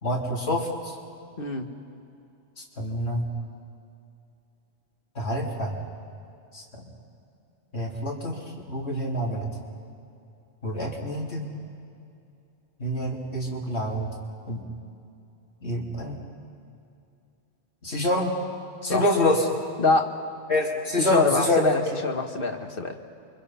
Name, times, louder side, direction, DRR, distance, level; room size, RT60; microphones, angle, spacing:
voice 1, 0.0-1.0 2.8-3.2 5.2-5.8 6.5-6.8 7.7-8.4 8.7-9.5 10.6-11.5 12.8-14.1 14.5-14.6 15.6-16.2 17.8-18.3 18.8-19.5 20.5-21.6, left 1 dB, 70° left, -2 dB, 3.5 m, -26 dB
voice 2, 1.4-1.7 18.8-19.0 19.8-20.1 21.1-23.0, left 3 dB, 50° left, 4 dB, 1.7 m, -24 dB
29.0 x 24.0 x 5.8 m, 2.7 s
omnidirectional pair, 1.2 m